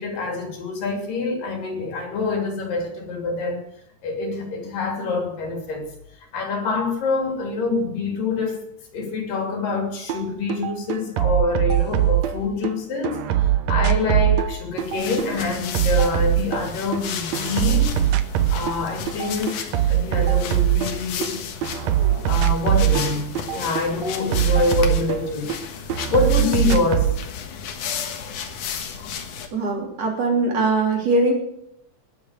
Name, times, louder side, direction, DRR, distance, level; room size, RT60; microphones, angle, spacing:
voice 1, 0.0-3.6 4.0-5.9 6.3-8.6 8.9-17.9 18.5-21.4 22.3-25.6 26.1-27.2, left 3 dB, 85° left, 3 dB, 4.5 m, -26 dB
sound 1, 10.1-10.2 10.5-12.7 13.0-17.0 17.3-18.8 19.1-21.3 21.6-25.6 25.9-27.2, right 12 dB, 65° right, 1.9 m, -21 dB
sound 2, 14.8-29.5, left 7 dB, 70° left, 2.8 m, -33 dB
voice 2, 29.5-31.3, right 2 dB, 50° right, 0 dB, 4.2 m, -21 dB
19.5 x 7.7 x 8.2 m, 0.80 s
omnidirectional pair, 3.8 m